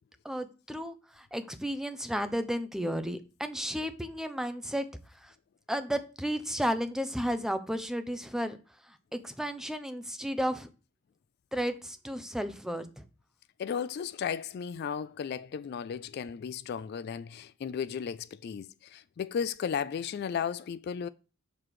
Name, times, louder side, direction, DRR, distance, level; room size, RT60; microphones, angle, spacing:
voice 1, 0.2-4.9 5.2-5.3 5.7-8.6 8.9-10.7 11.5-13.0, equal, 5° right, 0.5 m, -33 dB
voice 2, 13.6-21.1, left 7 dB, 55° left, 0.3 m, -35 dB
6.9 x 3.2 x 5.7 m
head